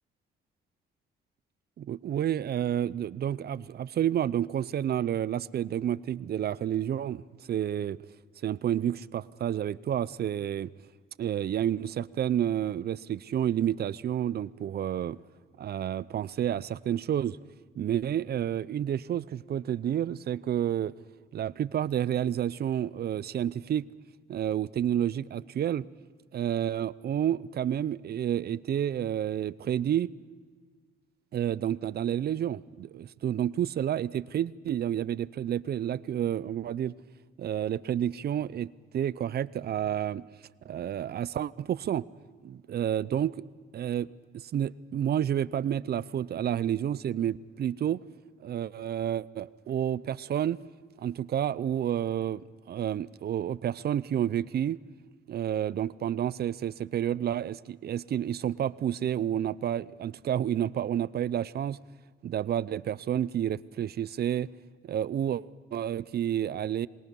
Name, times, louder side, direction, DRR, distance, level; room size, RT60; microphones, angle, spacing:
voice 1, 1.8-7.2 7.5-8.0 8.4-10.7 11.2-15.2 15.6-17.4 17.8-20.9 21.3-23.9 24.3-25.9 26.3-30.1 31.3-36.9 37.4-40.3 40.6-42.0 42.4-43.4 43.7-48.0 48.4-50.6 51.0-54.8 55.3-61.8 62.2-64.5 64.8-66.9, right 10 dB, 55° right, 19 dB, 0.6 m, -30 dB
27.0 x 21.0 x 5.4 m, 1.5 s
cardioid pair, 90°, 20 cm